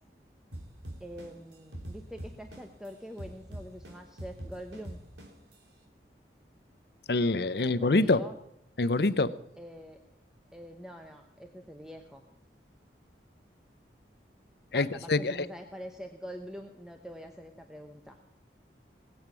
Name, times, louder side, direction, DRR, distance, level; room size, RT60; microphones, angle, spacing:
sound 1, 0.5-2.9 3.2-5.5, right 1 dB, 85° right, 3.2 m, -42 dB
voice 1, 1.0-5.0 7.6-8.4 9.6-10.0 10.5-12.3 14.7-18.2, equal, 5° right, 4 dB, 0.9 m, -45 dB
voice 2, 7.1-8.2 8.8-9.3 14.7-15.5, left 2 dB, 65° left, 16 dB, 0.7 m, -25 dB
19.5 x 8.8 x 6.1 m, 0.81 s
head